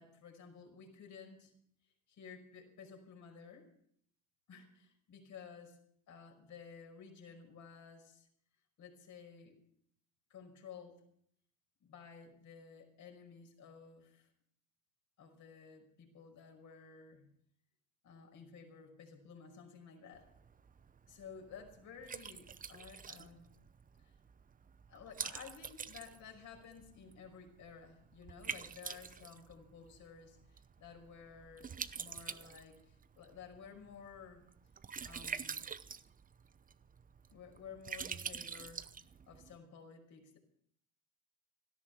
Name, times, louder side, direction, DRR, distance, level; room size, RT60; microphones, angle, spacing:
voice 1, 0.0-1.5 1.8-3.7 4.5-5.8 6.1-8.3 8.8-9.6 10.3-11.0 11.8-14.3 15.2-17.3 18.0-20.3 21.1-23.5 24.0-24.1 24.9-34.4 35.0-35.7 37.3-38.9 39.3-40.4, left 6 dB, 50° left, 4 dB, 5.5 m, -54 dB
Liquid, 20.1-39.6, right 6 dB, 20° right, 0.8 m, -47 dB
17.5 x 13.0 x 6.0 m, 0.68 s
hypercardioid pair, 80°, 39 cm